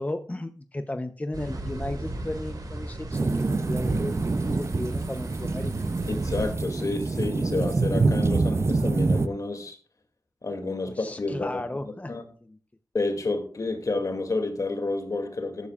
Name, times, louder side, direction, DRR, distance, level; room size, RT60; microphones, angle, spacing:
voice 1, 0.0-5.7 10.9-12.2 12.4-12.6, left 1 dB, 25° left, 0.8 m, -35 dB
sound 1, 1.3-6.5, right 1 dB, 75° right, 4.3 m, -36 dB
sound 2, 3.1-9.3, right 3 dB, 45° right, 0.6 m, -26 dB
voice 2, 6.1-9.8 10.4-11.8 12.1-12.2 12.9-15.7, left 3 dB, 60° left, 2.6 m, -30 dB
14.0 x 11.5 x 2.5 m
wide cardioid pair, 80°, 6 cm